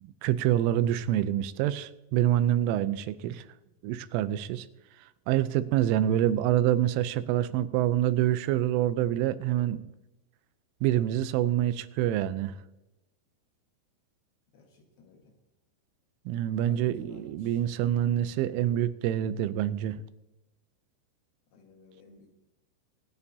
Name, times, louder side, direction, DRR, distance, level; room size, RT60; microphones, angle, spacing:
voice 1, 0.0-3.4 3.8-4.7 5.3-9.8 10.8-12.5 16.3-20.0, right 12 dB, 90° right, 14 dB, 3.2 m, -26 dB
voice 2, 14.5-15.3 16.7-17.6 21.5-22.3, left 4 dB, 60° left, 1 dB, 3.1 m, -53 dB
25.5 x 9.0 x 2.8 m, 0.97 s
omnidirectional pair, 5.5 m